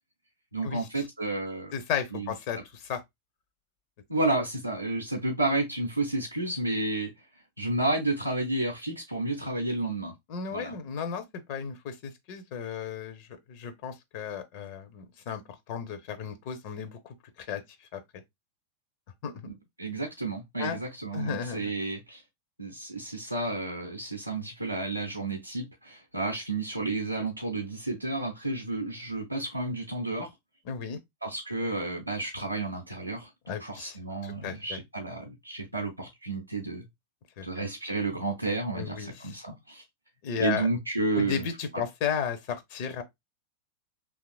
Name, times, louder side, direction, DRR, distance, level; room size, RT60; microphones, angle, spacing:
voice 1, 0.5-1.7 2.1-2.3 4.1-7.1 7.6-10.1 10.5-10.7 19.4-22.2 22.6-30.3 31.2-36.9 37.4-39.8 40.4-41.5 41.7-41.9, right 2 dB, 85° right, 0.5 m, -31 dB
voice 2, 1.7-3.0 10.3-11.2 11.5-15.4 15.7-17.0 17.4-17.6 17.9-18.0 19.2-19.4 20.6-20.8 21.1-21.7 30.7-31.0 33.5-34.0 34.2-34.8 37.4-37.6 38.8-39.1 40.2-40.7 41.1-43.0, left 7 dB, 45° left, 0.5 m, -34 dB
3.0 x 2.4 x 2.3 m
figure-of-eight pair, 90°, 0 cm